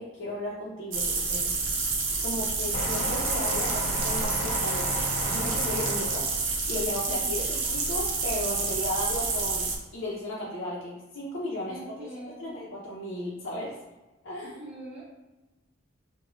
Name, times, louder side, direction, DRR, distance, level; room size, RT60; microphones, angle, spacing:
voice 1, 0.0-1.6 2.2-4.9 5.2-11.8 12.1-13.8 14.2-14.6, left 1 dB, 65° left, -7 dB, 0.7 m, -35 dB
sound 1, 0.9-9.8, right 4 dB, 70° right, 0.6 m, -29 dB
sound 2, 2.7-6.9 7.7-7.9, equal, 35° left, 1.1 m, -34 dB
voice 2, 7.1-7.5 11.7-12.5 14.4-15.0, right 1 dB, 30° right, -8 dB, 0.7 m, -43 dB
3.7 x 2.2 x 3.0 m, 1.1 s
head